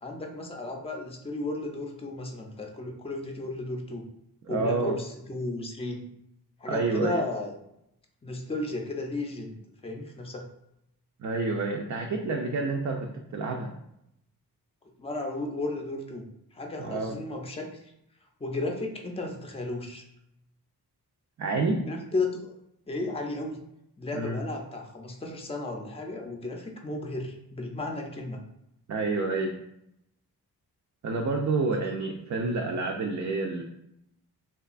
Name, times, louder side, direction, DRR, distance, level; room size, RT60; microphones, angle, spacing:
voice 1, 0.0-4.0 4.5-6.1 6.6-7.5 8.2-9.6 9.8-10.5 15.0-16.3 16.5-17.7 18.4-20.0 21.9-22.5 22.9-23.6 24.0-28.4 31.9-32.0, left 2 dB, 15° left, 2 dB, 0.5 m, -34 dB
voice 2, 4.4-4.9 6.7-7.2 11.2-13.7 16.8-17.2 21.4-21.8 24.1-24.4 28.9-29.6 31.0-33.6, right 3 dB, 45° right, 2 dB, 0.4 m, -28 dB
2.8 x 2.3 x 2.5 m, 0.80 s
cardioid pair, 50°, 40 cm